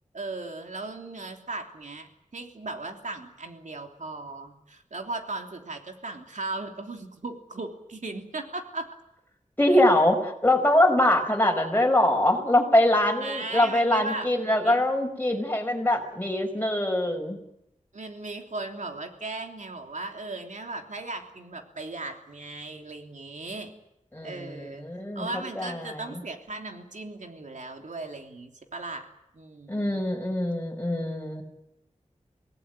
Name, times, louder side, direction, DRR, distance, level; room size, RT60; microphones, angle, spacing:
voice 1, 0.1-8.9 13.2-14.9 17.9-23.7 24.2-24.8 25.1-29.1 29.3-30.0, right 3 dB, 80° right, 4 dB, 3.2 m, -37 dB
voice 2, 9.6-17.4 24.1-26.2 29.7-31.4, left 1 dB, 15° left, 2 dB, 5.5 m, -23 dB
26.5 x 18.5 x 9.1 m, 0.84 s
wide cardioid pair, 70°, 13 cm